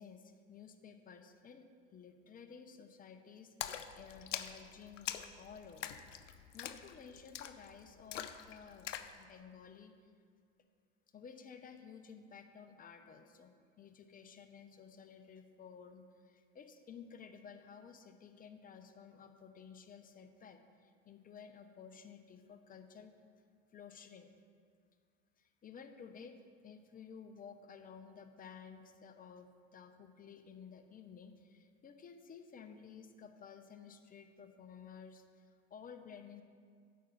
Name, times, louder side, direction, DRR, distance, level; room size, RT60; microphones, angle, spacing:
voice 1, 0.0-6.0 6.5-8.9 9.2-9.9 11.1-23.1 23.7-24.3 25.4-36.4, left 6 dB, 25° left, 7 dB, 0.7 m, -54 dB
Splash splatter, 3.6-9.2, left 10 dB, 75° left, 0.6 m, -44 dB
8.6 x 5.4 x 7.0 m, 2.1 s
hypercardioid pair, 85°, 37 cm